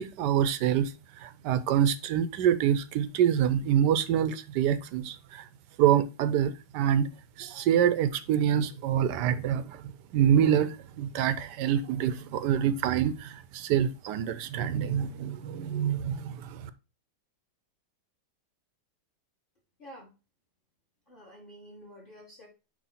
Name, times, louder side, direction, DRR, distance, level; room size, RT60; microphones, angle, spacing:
voice 1, 0.0-5.5 5.8-7.1 7.4-16.7, right 9 dB, 75° right, 1.2 m, -26 dB
voice 2, 19.8-20.1 21.1-22.5, equal, 30° left, 2.1 m, -49 dB
9.3 x 3.1 x 4.1 m
omnidirectional pair, 2.0 m